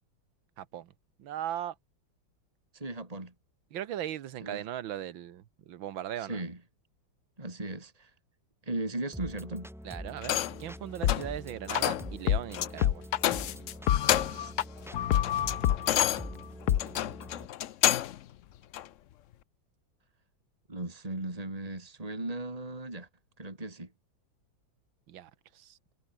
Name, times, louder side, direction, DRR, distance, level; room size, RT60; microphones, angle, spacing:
voice 1, 0.6-0.9 1.2-1.8 3.7-6.4 9.8-13.0 25.1-25.8, right 11 dB, 85° right, 1.9 m, -38 dB
voice 2, 2.7-3.3 4.4-4.7 6.2-6.6 7.4-8.1 8.6-9.7 14.3-14.5 20.7-23.1 23.4-23.9, right 2 dB, 20° right, 3.5 m, -37 dB
sound 1, 9.1-17.5, equal, ahead, 6.3 m, -44 dB
sound 2, 10.2-10.7 11.1-11.3 11.7-12.1 12.5-12.7 13.2-13.7 14.0-14.5 14.9-18.2 18.7-18.9, left 12 dB, 90° left, 0.6 m, -30 dB
sound 3, 11.0-11.2 11.8-11.9 12.3-14.6 14.9-16.1 16.7-16.8, left 11 dB, 60° left, 1.2 m, -27 dB
omnidirectional pair, 2.1 m